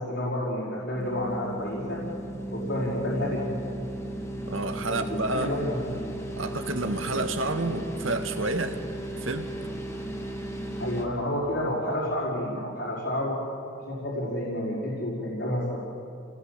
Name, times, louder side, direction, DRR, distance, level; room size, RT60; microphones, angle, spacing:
voice 1, 0.0-2.0 2.5-3.7 4.7-5.9 10.8-13.4 13.7-15.8, left 1 dB, 65° left, -6 dB, 5.6 m, -30 dB
sound 1, 0.9-11.0, right 1 dB, 15° left, 2.7 m, -35 dB
voice 2, 4.5-5.5 6.4-8.8 9.2-9.5, right 2 dB, 85° right, 6 dB, 1.9 m, -29 dB
30.0 x 20.0 x 8.3 m, 2.6 s
head